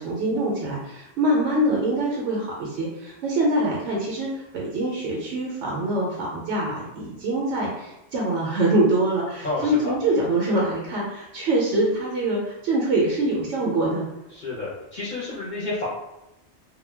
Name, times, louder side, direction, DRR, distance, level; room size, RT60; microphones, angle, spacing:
voice 1, 0.0-14.1, right 1 dB, 80° right, -3 dB, 0.9 m, -24 dB
voice 2, 9.4-9.9 14.3-15.9, left 2 dB, 50° left, -8 dB, 0.7 m, -30 dB
2.2 x 2.1 x 3.2 m, 0.90 s
omnidirectional pair, 1.2 m